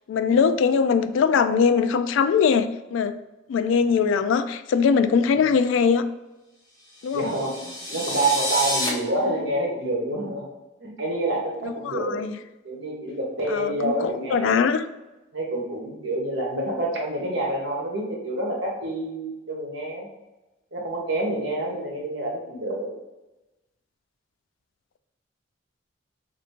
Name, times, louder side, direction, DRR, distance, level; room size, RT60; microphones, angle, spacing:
voice 1, 0.1-3.2 3.5-6.1 7.0-7.3 11.8-12.4 13.5-14.9, left 6 dB, 80° left, 0.3 m, -21 dB
sound 1, 7.0-8.9, left 1 dB, 20° left, 1.2 m, -29 dB
voice 2, 7.1-10.5 10.8-12.2 12.6-14.7 15.3-20.1 20.7-22.9, right 1 dB, 65° right, 1.0 m, -27 dB
3.3 x 2.6 x 4.3 m
head